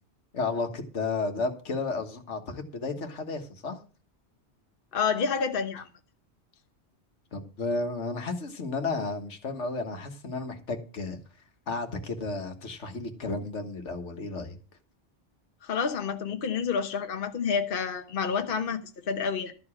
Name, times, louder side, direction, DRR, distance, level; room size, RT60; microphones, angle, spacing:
voice 1, 0.3-3.8 7.3-11.2 11.7-14.6, left 3 dB, 85° left, 1.7 m, -32 dB
voice 2, 4.9-5.9 15.6-19.5, left 6 dB, 55° left, 1.1 m, -29 dB
13.0 x 4.8 x 8.5 m
omnidirectional pair, 1.2 m